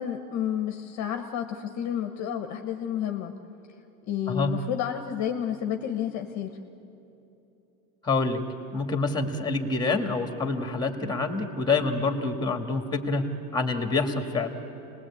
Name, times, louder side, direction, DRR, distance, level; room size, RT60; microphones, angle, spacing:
voice 1, 0.0-3.3 4.0-6.5, left 9 dB, 35° left, 6 dB, 1.2 m, -30 dB
voice 2, 8.0-8.4 8.7-13.2 13.5-14.5, left 3 dB, 10° left, 6 dB, 1.9 m, -27 dB
26.5 x 20.0 x 8.6 m, 3.0 s
supercardioid pair, 130°, 45 cm